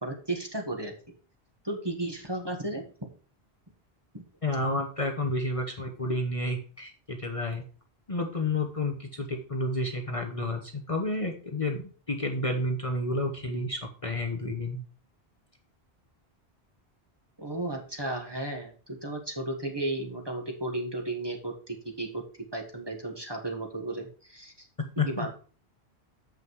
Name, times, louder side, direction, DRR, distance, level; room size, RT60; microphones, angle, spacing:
voice 1, 0.0-1.0 1.6-2.8 4.1-4.2 17.4-22.2 22.5-24.7 25.0-25.3, right 2 dB, 25° right, 1 dB, 1.5 m, -34 dB
voice 2, 4.4-7.6 8.1-14.8 25.0-25.3, left 2 dB, 35° left, 2 dB, 1.1 m, -30 dB
7.5 x 5.7 x 4.7 m, 0.39 s
omnidirectional pair, 1.1 m